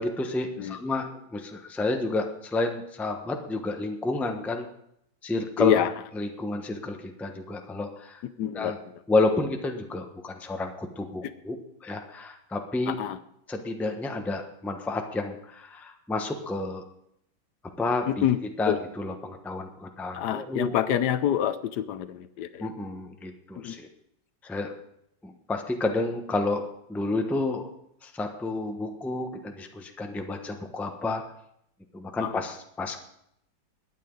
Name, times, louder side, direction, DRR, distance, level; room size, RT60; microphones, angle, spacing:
voice 1, 0.0-4.7 5.2-5.9 6.2-8.2 8.5-8.7 9.1-11.6 11.8-13.0 13.5-16.8 17.8-18.3 18.6-20.8 22.6-23.9 24.4-24.7 25.2-27.7 28.0-31.2 31.9-33.0, left 2 dB, ahead, 4 dB, 0.6 m, -30 dB
voice 2, 5.6-5.9 8.4-9.0 12.9-13.2 18.1-18.4 18.7-18.8 20.1-22.7 23.5-23.8 32.2-32.4, left 10 dB, 70° left, 13 dB, 1.0 m, -27 dB
21.0 x 9.3 x 3.9 m, 0.74 s
omnidirectional pair, 2.2 m